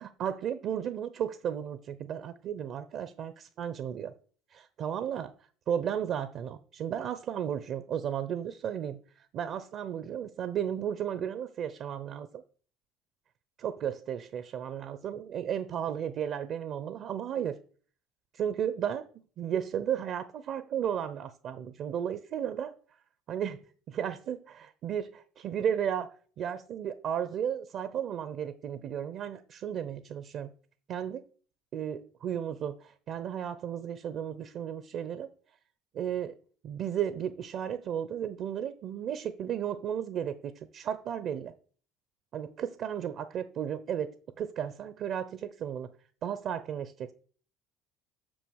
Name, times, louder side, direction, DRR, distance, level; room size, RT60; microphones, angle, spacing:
voice 1, 0.2-4.1 4.5-5.3 5.7-9.0 9.3-12.4 13.6-17.5 18.3-19.1 19.4-22.7 23.3-23.6 23.9-26.1 26.4-30.5 30.9-31.2 31.7-35.3 35.9-36.4 36.6-41.5 42.3-45.9 46.2-47.1, right 9 dB, 55° right, 0.8 m, -34 dB
6.5 x 6.3 x 6.4 m
hypercardioid pair, 75°, 0 cm